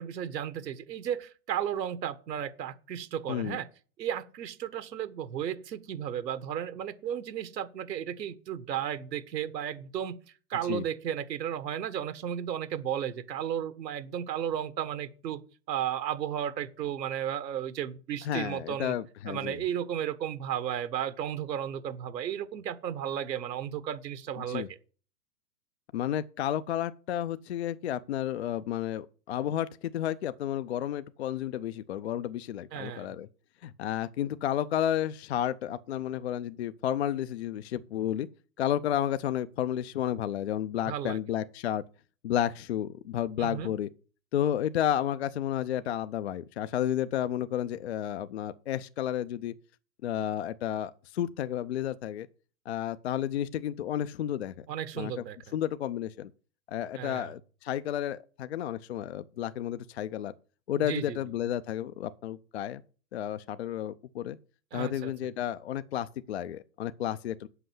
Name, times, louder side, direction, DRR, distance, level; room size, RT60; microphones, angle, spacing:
voice 1, 0.0-3.7 4.0-10.1 10.5-15.4 15.7-18.9 19.2-24.8 32.7-33.1 40.9-41.2 43.4-43.7 54.7-55.4 57.0-57.3 60.8-61.3 64.7-65.1, right 9 dB, 75° right, 1.5 m, -34 dB
voice 2, 18.2-19.6 24.5-24.7 25.9-33.3 33.6-38.3 38.6-41.8 42.2-43.9 44.3-49.5 50.0-52.3 52.7-54.7 55.0-55.1 55.5-56.3 56.7-60.3 60.7-62.8 63.1-64.4 64.7-67.5, left 11 dB, 45° left, 0.4 m, -32 dB
7.9 x 5.6 x 7.6 m
hypercardioid pair, 145°, 50 cm